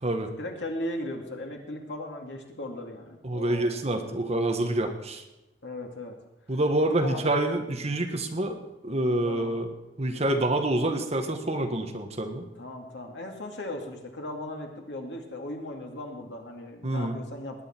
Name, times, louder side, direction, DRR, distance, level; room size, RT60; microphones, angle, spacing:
voice 1, 0.4-3.7 4.8-4.9 5.6-6.2 7.0-7.3 9.2-9.6 12.6-17.6, left 1 dB, 85° left, 2 dB, 2.3 m, -37 dB
voice 2, 3.2-5.2 6.5-8.6 8.8-9.7 10.0-12.5 16.8-17.1, right 1 dB, 35° right, 5 dB, 1.4 m, -27 dB
19.5 x 9.5 x 4.4 m, 1.0 s
head